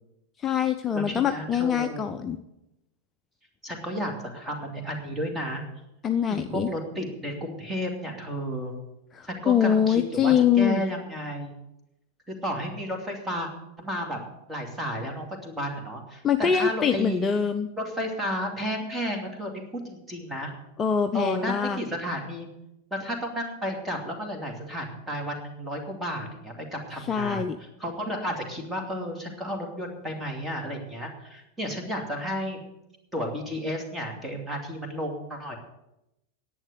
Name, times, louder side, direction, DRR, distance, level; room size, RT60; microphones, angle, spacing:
voice 1, 0.4-2.4 6.0-6.7 9.1-10.8 16.2-17.7 20.8-21.8 27.1-27.6, left 7 dB, 20° left, 6 dB, 0.7 m, -24 dB
voice 2, 0.9-2.1 3.6-5.6 6.3-8.8 9.2-11.5 12.3-13.5 13.8-14.2 14.5-17.3 17.8-20.5 21.1-22.5 22.9-27.4 27.8-32.6 33.1-35.6, equal, 10° right, 2 dB, 2.7 m, -32 dB
11.0 x 8.6 x 8.2 m, 0.89 s
figure-of-eight pair, 90°, 0 cm